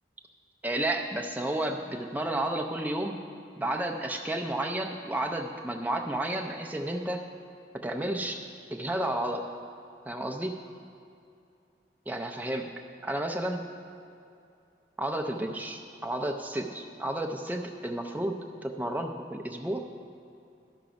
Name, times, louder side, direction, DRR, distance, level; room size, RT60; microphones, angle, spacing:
voice 1, 0.6-3.2 3.6-7.2 7.8-8.4 8.7-9.4 10.1-10.5 12.1-12.7 13.0-13.6 15.0-19.8, right 1 dB, 10° right, 2 dB, 0.4 m, -31 dB
12.5 x 5.8 x 5.1 m, 2.6 s
head